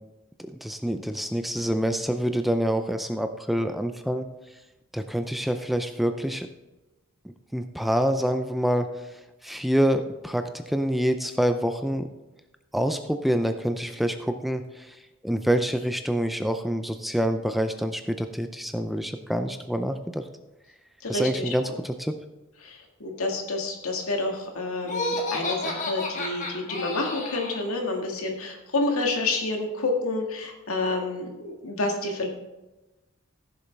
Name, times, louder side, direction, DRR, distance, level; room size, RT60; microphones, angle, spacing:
voice 1, 0.4-4.3 4.9-6.5 7.2-9.1 9.4-12.1 12.7-15.0 15.2-20.2 21.1-22.2, equal, ahead, 7 dB, 0.4 m, -26 dB
voice 2, 21.0-21.7 22.6-32.3, left 2 dB, 85° left, 2 dB, 1.8 m, -29 dB
Laughter, 24.8-27.7, left 2 dB, 35° left, 1.5 m, -31 dB
15.0 x 7.0 x 3.4 m, 1.1 s
head